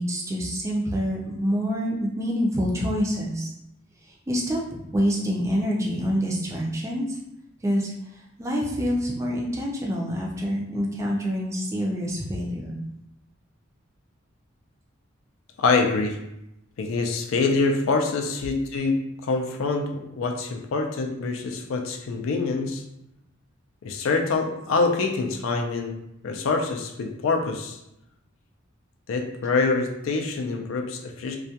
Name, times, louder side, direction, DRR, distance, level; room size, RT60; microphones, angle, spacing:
voice 1, 0.0-3.5 4.3-7.2 7.6-7.9 8.4-12.8, equal, 15° right, -3 dB, 0.3 m, -26 dB
voice 2, 15.6-16.2 16.8-22.8 23.8-27.8 29.1-31.4, left 3 dB, 80° left, 3 dB, 0.4 m, -25 dB
2.3 x 2.1 x 2.7 m, 0.83 s
head